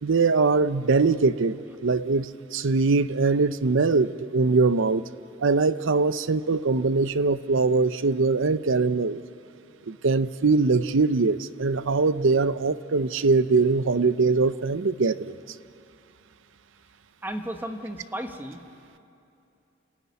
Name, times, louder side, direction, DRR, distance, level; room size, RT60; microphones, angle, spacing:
voice 1, 0.0-5.0 5.4-9.2 9.9-15.3, right 4 dB, 65° right, 14 dB, 0.7 m, -22 dB
voice 2, 17.2-18.6, right 1 dB, 10° right, 5 dB, 1.3 m, -34 dB
30.0 x 14.0 x 9.5 m, 2.6 s
head